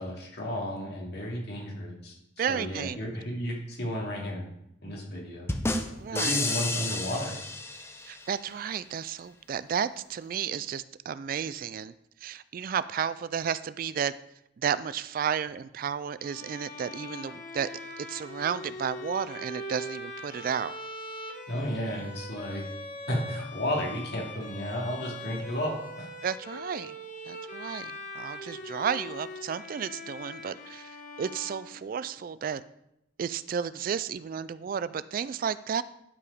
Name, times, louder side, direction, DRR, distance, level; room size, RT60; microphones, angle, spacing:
voice 1, 0.0-4.4 4.8-5.5 6.1-7.4 21.5-22.6 23.1-26.1, equal, 60° left, -2 dB, 2.7 m, -33 dB
voice 2, 2.4-3.0 6.0-6.4 8.0-11.9 12.2-14.1 14.6-17.7 18.0-20.7 26.2-26.9 27.3-32.6 33.2-35.8, right 7 dB, 50° right, 16 dB, 0.3 m, -32 dB
sound 1, 5.5-8.3, left 2 dB, 15° left, 0.7 m, -31 dB
Bowed string instrument, 16.2-32.3, left 1 dB, 45° left, 1.1 m, -42 dB
11.0 x 4.9 x 5.0 m, 0.80 s
head